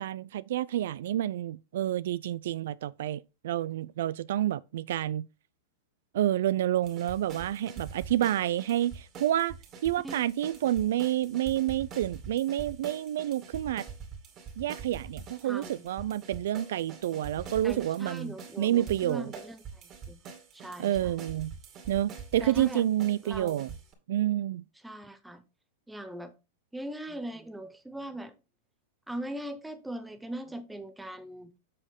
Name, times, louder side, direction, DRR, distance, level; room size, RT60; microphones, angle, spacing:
voice 1, 0.0-5.3 6.1-9.6 9.8-13.8 14.6-18.3 18.6-19.3 20.8-21.5 21.9-23.7 24.1-24.6, right 12 dB, 70° right, 0.3 m, -29 dB
sound 1, 6.8-23.9, right 6 dB, 30° right, 2.3 m, -44 dB
voice 2, 15.4-15.9 17.6-20.2 20.5-21.1 22.4-22.9 23.2-23.7 24.8-25.4 25.9-26.3 26.7-28.3 29.1-31.6, right 1 dB, 5° right, 0.8 m, -40 dB
7.5 x 6.4 x 3.6 m
supercardioid pair, 155°, 0 cm